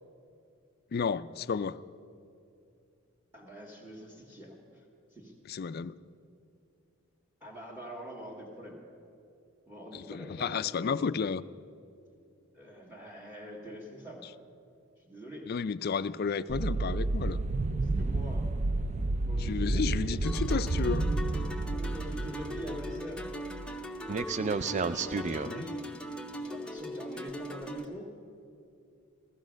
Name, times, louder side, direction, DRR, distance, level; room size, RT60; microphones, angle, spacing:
voice 1, 0.9-1.8 5.5-6.0 9.9-11.4 15.5-17.4 19.4-21.1 25.5-25.6, left 5 dB, 45° left, 15 dB, 0.4 m, -32 dB
voice 2, 3.3-5.3 7.4-8.8 9.7-11.0 12.5-14.3 15.0-15.5 17.8-18.5 19.3-20.2 21.7-23.3 24.4-25.8 26.4-28.1, equal, 10° right, -3 dB, 1.6 m, -44 dB
sound 1, 16.5-23.8 24.1-25.5, right 3 dB, 35° right, 0.4 m, -31 dB
sound 2, 20.2-27.8, equal, 5° left, 0.8 m, -40 dB
15.0 x 15.0 x 6.3 m, 2.5 s
head